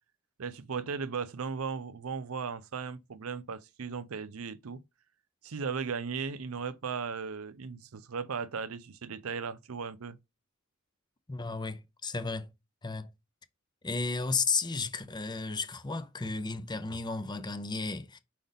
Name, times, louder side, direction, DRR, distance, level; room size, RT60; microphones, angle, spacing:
voice 1, 0.4-4.8 5.4-10.2, right 5 dB, 75° right, 0.6 m, -36 dB
voice 2, 11.3-12.5 12.8-13.1 13.8-18.2, left 4 dB, 20° left, 0.6 m, -33 dB
5.2 x 5.0 x 4.0 m
head